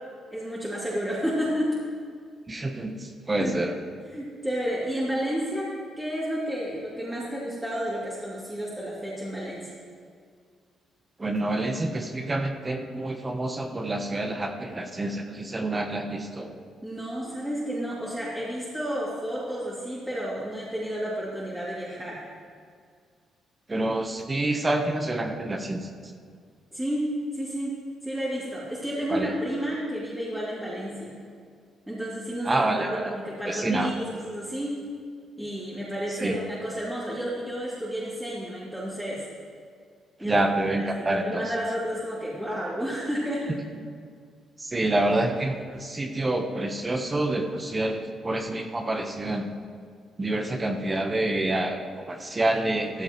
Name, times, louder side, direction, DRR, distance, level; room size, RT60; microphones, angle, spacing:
voice 1, 0.3-1.8 3.4-3.6 4.1-9.7 16.8-22.2 26.7-27.7 28.0-31.1 31.9-34.8 35.4-39.2 40.2-40.5 40.8-43.5, equal, 10° right, -8 dB, 2.6 m, -31 dB
voice 2, 2.5-3.7 11.2-16.5 23.7-26.1 29.1-29.3 32.4-33.2 33.5-33.9 36.1-36.4 40.2-41.5 43.5-43.6 44.6-49.6 50.2-53.0, right 2 dB, 25° right, 5 dB, 0.9 m, -27 dB
14.0 x 13.0 x 3.0 m, 2.1 s
cardioid pair, 90°, 0 cm